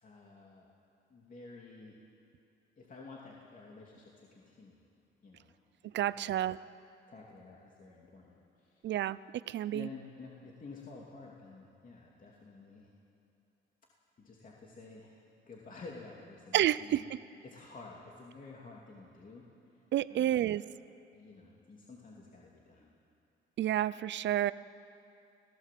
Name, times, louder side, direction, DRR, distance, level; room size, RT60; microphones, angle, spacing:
voice 1, 0.0-0.7 1.1-2.0 2.8-4.9 5.2-5.6 5.8-6.4 7.1-8.9 9.7-12.9 14.2-15.2 15.4-17.1 17.4-19.5 19.7-19.8 20.1-20.6 21.1-22.9, left 3 dB, 40° left, -2 dB, 2.9 m, -51 dB
voice 2, 5.9-6.6 8.8-9.2 9.5-9.9 16.5-17.2 19.9-20.6 23.6-24.5, right 12 dB, 65° right, 17 dB, 0.6 m, -30 dB
25.5 x 17.0 x 7.7 m, 2.6 s
cardioid pair, 90°, 20 cm